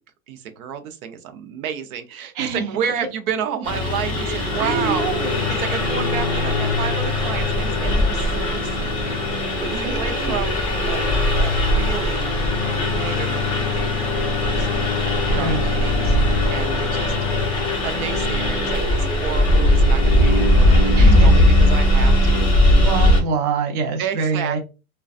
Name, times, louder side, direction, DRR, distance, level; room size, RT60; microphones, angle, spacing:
voice 1, 0.3-11.0 11.4-12.3 12.7-13.7 14.3-14.9 15.3-16.2 16.5-22.8 24.0-24.6, right 8 dB, 80° right, 0.7 m, -31 dB
voice 2, 2.3-2.7 4.2-5.4 9.8-10.3 15.3-15.6 21.0-21.4 22.8-24.6, right 5 dB, 35° right, 0.6 m, -26 dB
Engine, 3.6-23.2, left 1 dB, 10° left, 0.4 m, -19 dB
2.5 x 2.3 x 2.3 m
supercardioid pair, 150°, 43 cm